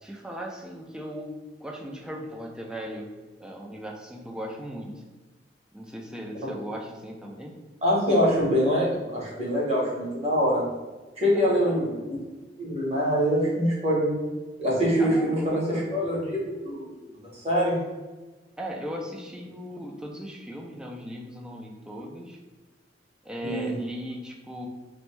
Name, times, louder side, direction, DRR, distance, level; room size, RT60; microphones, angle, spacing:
voice 1, 0.0-3.1 3.4-4.9 5.7-7.6 11.4-11.9 15.0-15.9 18.6-22.4 23.2-24.7, equal, 5° right, -1 dB, 0.3 m, -37 dB
voice 2, 7.8-10.6 11.2-12.2 12.6-14.1 14.6-17.0 17.3-17.8 23.4-23.7, equal, 35° right, -5 dB, 0.9 m, -24 dB
2.5 x 2.1 x 3.0 m, 1.2 s
head